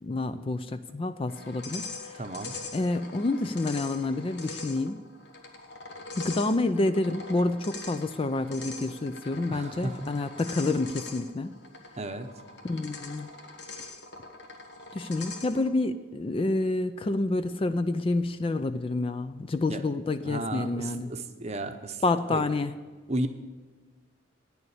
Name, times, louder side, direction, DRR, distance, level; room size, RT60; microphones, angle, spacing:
voice 1, 0.0-2.2 2.7-5.0 6.2-11.5 12.6-13.3 14.9-21.1 22.0-22.7, left 2 dB, 25° left, 11 dB, 0.3 m, -28 dB
sound 1, 1.3-15.8, left 3 dB, 60° left, 1.3 m, -43 dB
voice 2, 2.1-2.5 9.4-10.1 12.0-12.3 19.7-19.8 20.3-22.0 22.3-22.4 23.1-23.3, right 2 dB, 35° right, 7 dB, 0.7 m, -33 dB
9.8 x 7.0 x 8.1 m, 1.4 s
head